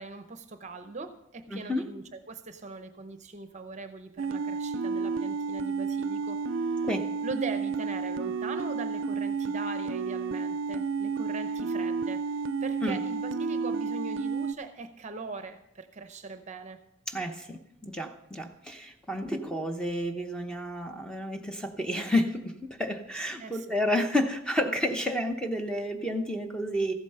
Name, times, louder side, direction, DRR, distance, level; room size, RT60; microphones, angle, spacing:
voice 1, 0.0-6.9 7.2-16.8 23.4-23.8, right 3 dB, 35° right, 9 dB, 0.7 m, -41 dB
voice 2, 1.5-1.8 6.8-7.0 12.8-13.0 17.1-22.5 22.8-26.9, left 1 dB, 5° left, 4 dB, 0.9 m, -30 dB
sound 1, 4.2-14.5, right 4 dB, 65° right, 0.4 m, -31 dB
14.5 x 8.2 x 5.5 m, 0.81 s
head